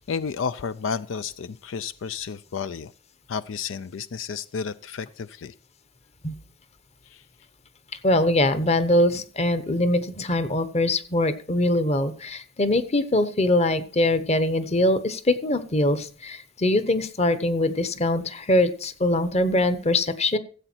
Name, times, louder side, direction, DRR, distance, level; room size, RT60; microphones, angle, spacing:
voice 1, 0.0-2.9 3.3-5.5, left 6 dB, 90° left, 15 dB, 0.5 m, -31 dB
voice 2, 8.0-20.4, left 1 dB, 35° left, 12 dB, 0.9 m, -23 dB
14.5 x 8.0 x 4.5 m, 0.40 s
head